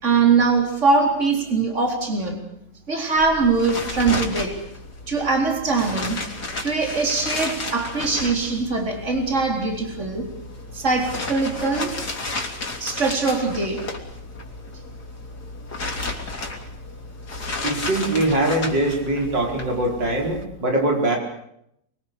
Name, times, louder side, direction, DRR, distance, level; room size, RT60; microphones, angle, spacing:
voice 1, 0.0-2.4 2.9-4.6 5.1-6.2 6.6-10.3 10.7-12.0 12.8-13.9, right 4 dB, 40° right, 3 dB, 4.4 m, -22 dB
sound 1, 3.2-20.4, left 2 dB, 65° left, 3.7 m, -33 dB
voice 2, 17.6-21.2, right 1 dB, 85° right, 1 dB, 5.4 m, -22 dB
26.5 x 22.5 x 6.7 m, 0.75 s
omnidirectional pair, 1.9 m